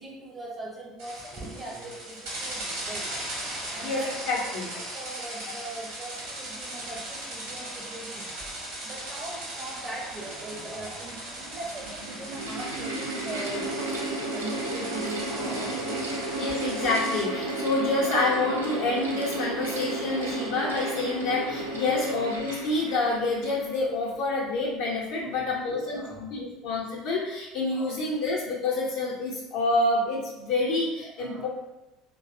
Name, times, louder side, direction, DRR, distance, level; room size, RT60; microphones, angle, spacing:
voice 1, 0.0-3.1 3.7-4.2 4.4-8.3 8.8-13.8 14.3-16.1 21.7-22.1 25.2-26.2 27.7-28.0 31.2-31.5, right 2 dB, 35° right, -3 dB, 0.5 m, -40 dB
sound 1, 1.0-17.2, right 1 dB, 65° right, 0.9 m, -38 dB
voice 2, 3.8-4.7 5.5-5.6 16.4-31.5, left 2 dB, 65° left, -4 dB, 0.5 m, -28 dB
Mechanical fan, 10.6-10.7 11.5-24.2, right 2 dB, 90° right, 0.3 m, -33 dB
2.5 x 2.0 x 2.4 m, 0.96 s
hypercardioid pair, 70°, 0 cm